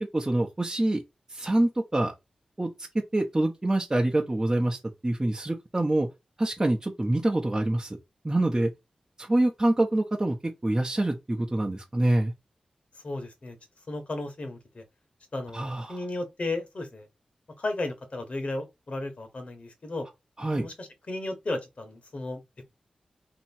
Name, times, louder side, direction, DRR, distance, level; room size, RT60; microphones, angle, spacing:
voice 1, 0.1-1.0 1.3-2.1 2.6-2.9 3.1-4.8 5.0-6.1 6.4-8.0 8.2-8.7 9.2-10.4 10.6-12.3 15.5-16.0 20.4-20.7, right 1 dB, 25° right, 0.9 m, -25 dB
voice 2, 13.0-13.6 13.9-14.8 15.3-17.1 17.6-20.1 20.5-22.4, left 2 dB, 60° left, 1.4 m, -34 dB
3.0 x 3.0 x 4.4 m
cardioid pair, 45°, 2 cm